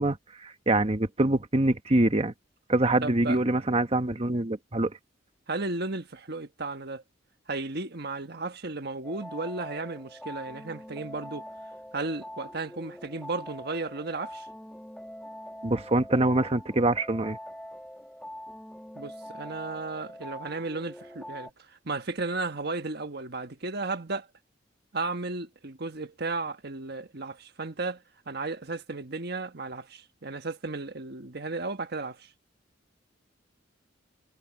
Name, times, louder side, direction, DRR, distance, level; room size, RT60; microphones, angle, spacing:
voice 1, 0.0-2.3 2.7-4.9 15.6-17.4, right 2 dB, 30° right, 1.3 m, -25 dB
voice 2, 3.0-3.6 5.5-7.0 7.5-11.5 11.9-14.5 18.9-24.3 24.9-32.3, right 3 dB, 55° right, 1.5 m, -34 dB
sound 1, 9.0-21.5, equal, 5° left, 1.6 m, -44 dB
head